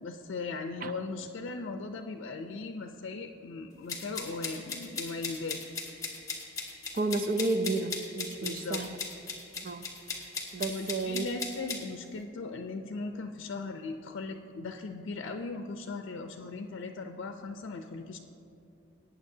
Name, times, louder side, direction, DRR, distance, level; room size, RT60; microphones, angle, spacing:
voice 1, 0.0-5.6 8.4-8.8 10.7-18.2, left 3 dB, 80° left, 5 dB, 0.5 m, -38 dB
sound 1, 3.9-11.8, left 4 dB, 15° left, 1.3 m, -37 dB
voice 2, 6.9-9.0 9.6-9.9 10.5-11.2, right 2 dB, 45° right, 8 dB, 0.5 m, -31 dB
18.5 x 9.1 x 2.7 m, 2.8 s
head